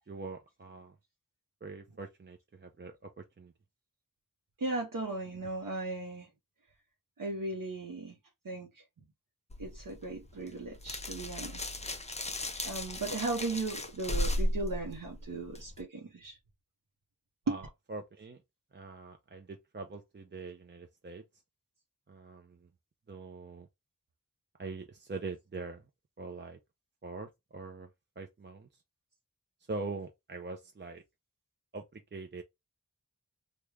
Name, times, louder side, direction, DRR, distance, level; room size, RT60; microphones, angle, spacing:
voice 1, 0.1-1.0 1.6-3.5 17.5-18.4 18.7-21.2 22.1-22.7 23.1-23.7 24.6-25.9 26.2-26.6 27.0-27.9 28.2-28.8 29.6-31.0 31.7-32.4, right 3 dB, 35° right, 0.5 m, -43 dB
voice 2, 4.6-6.3 7.2-8.2 8.4-8.8 9.6-11.7 12.6-16.4 17.5-17.6, right 2 dB, 75° right, 0.7 m, -36 dB
sound 1, 9.5-15.8, left 1 dB, 20° left, 0.5 m, -36 dB
3.1 x 2.2 x 3.4 m
wide cardioid pair, 60°, 33 cm